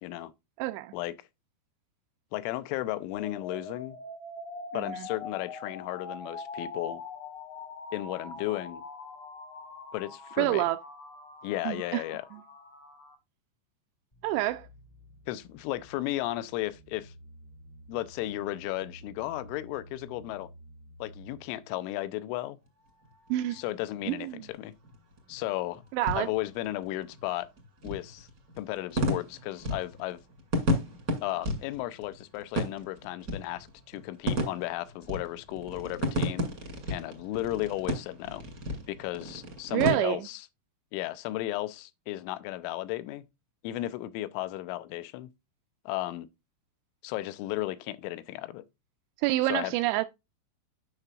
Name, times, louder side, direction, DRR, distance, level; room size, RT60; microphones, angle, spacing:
voice 1, 0.0-0.3 0.9-1.1 2.3-4.0 4.7-7.0 7.9-8.8 9.9-10.6 11.4-12.3 15.3-17.1 17.9-20.5 21.0-22.6 23.5-24.7 25.3-25.8 26.2-27.5 27.8-28.3 28.6-30.2 31.2-36.5 36.9-38.4 38.9-40.5 40.9-43.3 43.6-45.3 45.9-46.3 47.0-48.6 49.5-49.7, left 16 dB, 90° left, 3.1 m, -34 dB
voice 2, 0.6-0.9 4.7-5.1 10.4-10.8 11.7-12.0 14.2-14.7 23.3-23.6 24.1-24.4 25.9-26.3 39.7-40.3 49.2-50.1, right 16 dB, 85° right, 2.5 m, -27 dB
sound 1, 3.2-13.2, left 4 dB, 75° left, 4.6 m, -43 dB
sound 2, 14.1-21.9, right 1 dB, 40° left, 0.5 m, -52 dB
sound 3, 22.7-39.9, equal, 50° right, 1.0 m, -34 dB
9.7 x 5.9 x 2.3 m
omnidirectional pair, 5.5 m